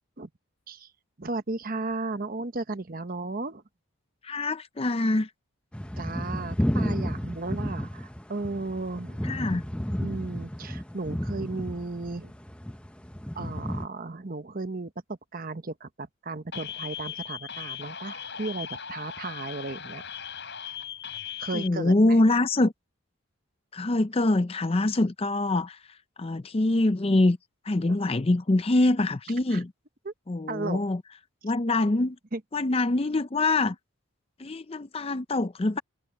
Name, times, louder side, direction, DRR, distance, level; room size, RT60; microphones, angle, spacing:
voice 1, 1.2-3.6 6.0-9.2 10.0-12.3 13.3-20.0 21.4-22.2 27.8-28.0 29.5-29.6 30.0-30.1 30.5-30.8 32.3-32.4, right 3 dB, 40° right, 1.0 m, -35 dB
voice 2, 4.2-5.3 9.2-9.6 21.5-22.7 23.7-25.8 26.2-27.4 27.7-29.7 30.3-31.0 31.4-32.2 32.5-33.8 34.4-35.8, left 2 dB, 25° left, 0.5 m, -24 dB
sound 1, 5.7-13.9, equal, 5° left, 0.9 m, -32 dB
sound 2, 16.5-21.7, left 8 dB, 50° left, 7.3 m, -38 dB
head